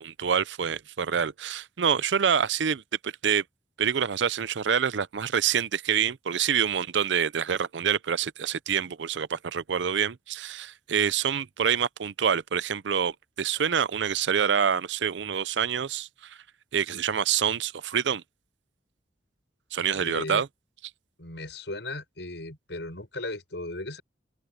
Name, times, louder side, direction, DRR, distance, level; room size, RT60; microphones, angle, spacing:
voice 1, 0.0-3.4 3.8-16.4 16.7-18.2 19.7-20.5, right 7 dB, 90° right, 0.6 m, -26 dB
voice 2, 19.9-20.4 21.2-24.0, left 2 dB, 80° left, 6.4 m, -36 dB
open air
head